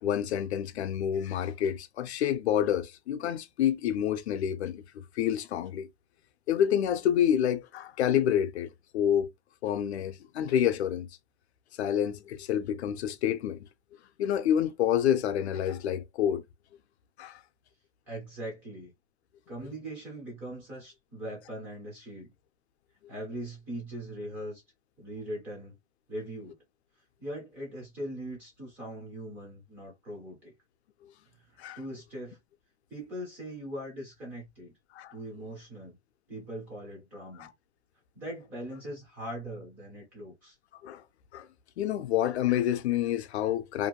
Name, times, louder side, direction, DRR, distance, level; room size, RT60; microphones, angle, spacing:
voice 1, 0.0-5.9 6.5-9.3 9.6-11.1 11.8-13.7 14.2-16.4 17.2-17.4 31.6-31.8 34.9-35.1 37.4-37.5 40.8-41.0 41.3-41.5 41.8-43.9, left 10 dB, 70° left, 0.5 m, -28 dB
voice 2, 18.1-18.9 19.5-22.3 23.1-24.6 25.0-25.8 26.1-26.6 27.2-30.5 31.3-32.4 32.9-34.7 35.1-36.0 36.3-37.5 38.1-40.6, right 1 dB, 5° right, 0.3 m, -40 dB
2.6 x 2.3 x 2.8 m
hypercardioid pair, 155°, 35 cm